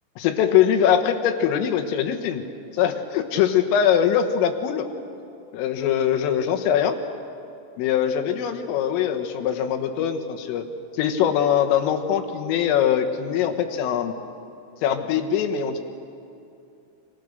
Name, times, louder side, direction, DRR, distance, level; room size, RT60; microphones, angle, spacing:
voice 1, 0.2-2.5 2.7-4.9 5.5-7.0 7.8-10.7 11.0-14.1 14.8-15.8, left 9 dB, 90° left, 6 dB, 4.0 m, -22 dB
30.0 x 25.0 x 6.6 m, 2.7 s
omnidirectional pair, 5.8 m